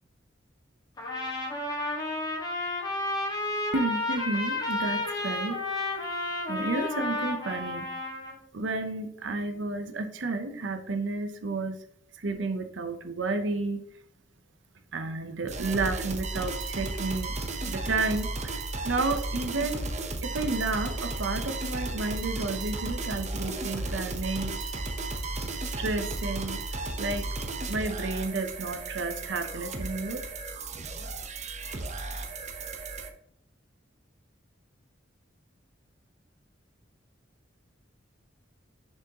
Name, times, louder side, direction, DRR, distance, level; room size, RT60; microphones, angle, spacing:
Trumpet, 1.0-8.3, left 2 dB, 20° left, 1.6 m, -31 dB
voice 1, 3.7-6.1 6.5-7.9 8.5-11.8 12.1-13.8 14.9-17.4 17.6-19.9 20.2-24.5 25.7-26.6 27.0-27.3 27.7-30.2, right 3 dB, 70° right, 8 dB, 0.7 m, -31 dB
sound 1, 15.5-33.1, right 2 dB, 40° right, 0.8 m, -34 dB
6.5 x 6.1 x 2.9 m, 0.75 s
head